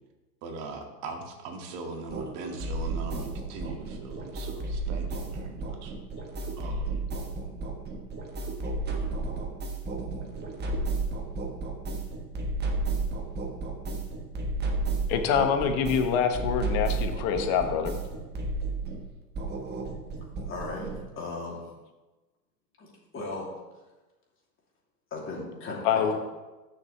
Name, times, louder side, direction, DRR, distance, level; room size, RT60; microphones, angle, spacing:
voice 1, 0.4-5.9 6.6-7.0, right 3 dB, 45° right, 2 dB, 2.0 m, -40 dB
sound 1, 2.1-21.1, right 3 dB, 20° right, 1.3 m, -32 dB
voice 2, 15.1-17.9 25.8-26.1, left 7 dB, 45° left, 6 dB, 1.3 m, -25 dB
voice 3, 20.4-21.7 22.8-23.5 25.1-26.1, left 2 dB, 25° left, -3 dB, 3.0 m, -36 dB
14.5 x 6.6 x 3.3 m, 1.1 s
hypercardioid pair, 125°, 50 cm